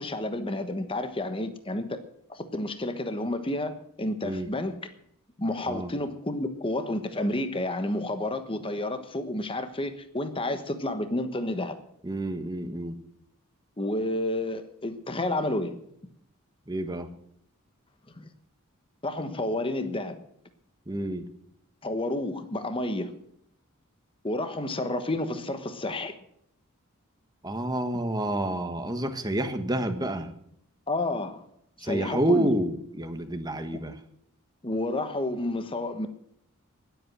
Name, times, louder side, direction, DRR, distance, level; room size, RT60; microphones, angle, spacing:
voice 1, 0.0-2.0 2.3-4.8 5.4-11.8 13.8-15.8 18.2-18.3 19.0-20.2 21.8-23.2 24.2-26.1 30.9-31.4 31.8-32.5 34.6-36.1, left 1 dB, 25° left, 9 dB, 1.2 m, -30 dB
voice 2, 12.0-13.0 16.7-17.1 20.9-21.3 27.4-30.3 31.8-34.0, right 1 dB, 20° right, 7 dB, 1.4 m, -29 dB
19.5 x 8.3 x 6.2 m, 0.72 s
head